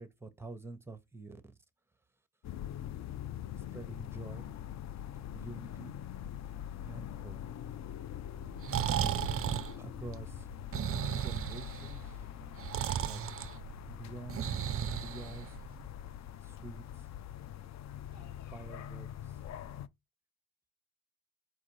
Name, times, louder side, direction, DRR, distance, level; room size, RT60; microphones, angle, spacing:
voice 1, 0.0-1.4 3.6-4.5 5.3-6.0 6.8-7.4 9.8-10.5 11.1-12.2 12.9-13.4 13.9-14.5 15.0-15.6 16.4-17.1 18.1-19.4, right 2 dB, 5° right, 0.8 m, -48 dB
sound 1, 2.4-19.9, left 10 dB, 40° left, 0.4 m, -44 dB
Breathing, 8.4-15.8, right 10 dB, 35° right, 0.4 m, -35 dB
4.6 x 2.4 x 4.6 m
supercardioid pair, 65°, 43 cm